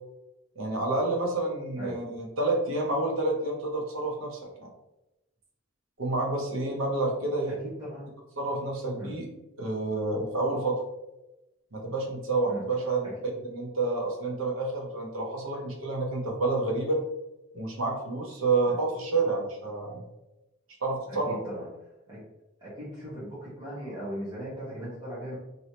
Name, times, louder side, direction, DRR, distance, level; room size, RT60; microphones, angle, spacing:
voice 1, 0.6-4.7 6.0-7.6 8.4-9.3 9.6-10.8 11.7-13.1 13.4-17.0 17.5-20.0 20.8-21.3, right 2 dB, 90° right, 0 dB, 0.9 m, -29 dB
voice 2, 7.6-8.1 9.0-9.1 12.5-12.6 13.0-13.1 18.7-18.8 21.1-21.7 22.1-22.2 22.6-25.4, equal, 20° right, -9 dB, 1.1 m, -38 dB
3.1 x 2.8 x 2.8 m, 0.96 s
head